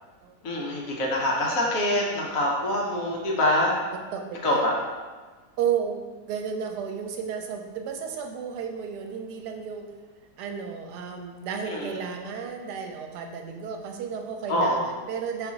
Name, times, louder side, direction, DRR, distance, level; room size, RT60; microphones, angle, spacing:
voice 1, 0.4-3.7 4.4-4.7 11.7-12.0 14.5-14.9, left 1 dB, 65° left, -2 dB, 1.1 m, -25 dB
voice 2, 4.1-4.7 5.6-9.8 10.4-15.5, right 7 dB, 85° right, 4 dB, 1.2 m, -33 dB
4.7 x 2.5 x 3.9 m, 1.3 s
omnidirectional pair, 1.7 m